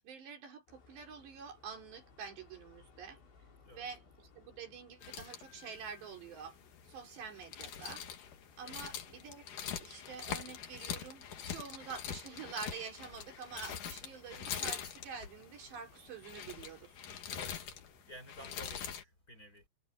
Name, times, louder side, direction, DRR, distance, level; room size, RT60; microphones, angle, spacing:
voice 1, 0.0-3.2 3.7-6.6 6.8-8.0 8.6-9.5 9.8-17.1, right 6 dB, 70° right, 6.2 m, -47 dB
sound 1, 0.7-18.0, left 4 dB, 80° left, 8.0 m, -63 dB
sound 2, 5.0-19.0, left 8 dB, 55° left, 3.1 m, -44 dB
voice 2, 17.3-17.6 18.0-19.6, equal, 20° left, 5.9 m, -53 dB
omnidirectional pair, 5.2 m